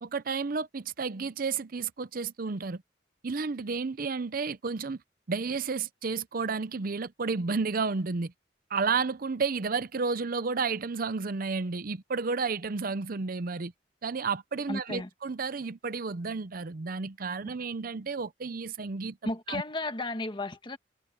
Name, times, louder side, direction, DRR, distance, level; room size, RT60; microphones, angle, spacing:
voice 1, 0.0-2.8 3.2-5.0 5.3-8.3 8.7-13.7 14.0-19.6, right 4 dB, 55° right, 0.6 m, -31 dB
voice 2, 14.7-15.1 19.2-20.8, left 2 dB, 30° left, 1.5 m, -34 dB
head